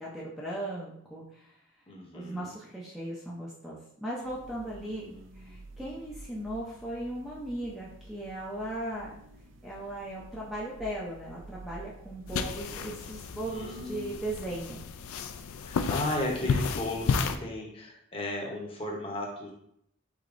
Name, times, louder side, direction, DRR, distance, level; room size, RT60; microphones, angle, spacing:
voice 1, 0.0-1.6 2.1-9.1 9.6-14.9, right 1 dB, ahead, -6 dB, 0.6 m, -37 dB
voice 2, 1.9-2.5 4.8-5.6 13.5-14.2 15.6-19.5, left 1 dB, 25° left, 0 dB, 0.8 m, -35 dB
sound 1, 4.2-13.5, right 2 dB, 60° right, 0.4 m, -50 dB
sound 2, 12.3-17.3, left 5 dB, 85° left, 0.4 m, -32 dB
4.9 x 4.1 x 2.5 m, 0.73 s
head